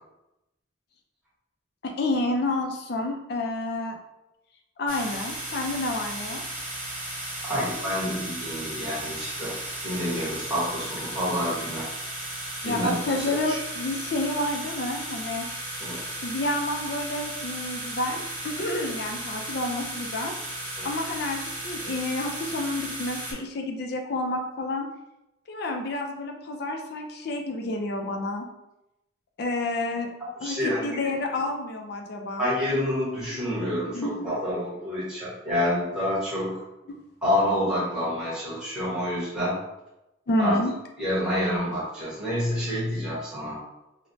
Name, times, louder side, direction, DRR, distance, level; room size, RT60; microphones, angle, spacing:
voice 1, 1.8-4.0 4.8-6.4 12.6-15.5 16.2-20.3 20.8-24.9 25.5-28.5 29.4-30.1 30.4-32.5 33.3-33.4 33.7-34.4 40.3-40.7, left 2 dB, 55° left, 3 dB, 0.4 m, -29 dB
sound 1, 4.9-23.3, right 1 dB, 45° right, 0.9 m, -35 dB
voice 2, 7.4-9.6 9.8-11.9 12.6-13.1 13.5-13.6 15.8-16.0 20.8-20.9 30.4-30.9 32.4-36.6 37.2-39.5 40.4-40.6 41.0-43.6, left 1 dB, 5° right, -11 dB, 1.2 m, -28 dB
3.0 x 2.1 x 2.6 m, 0.93 s
head